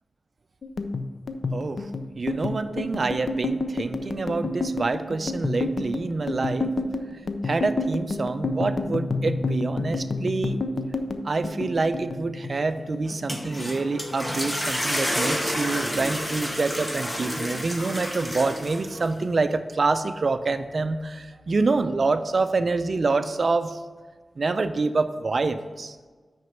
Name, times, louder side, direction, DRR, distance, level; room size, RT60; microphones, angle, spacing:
sound 1, 0.6-13.2 13.4-14.5 14.8-15.1 15.4-16.1, left 2 dB, 55° left, 0.5 m, -29 dB
voice 1, 1.5-6.7 7.4-10.6 11.2-23.8 24.4-26.0, right 3 dB, 45° right, 10 dB, 0.4 m, -26 dB
sound 2, 13.1-19.1, equal, 10° left, 0.8 m, -30 dB
6.2 x 5.1 x 5.8 m, 1.4 s
wide cardioid pair, 140°, 0 cm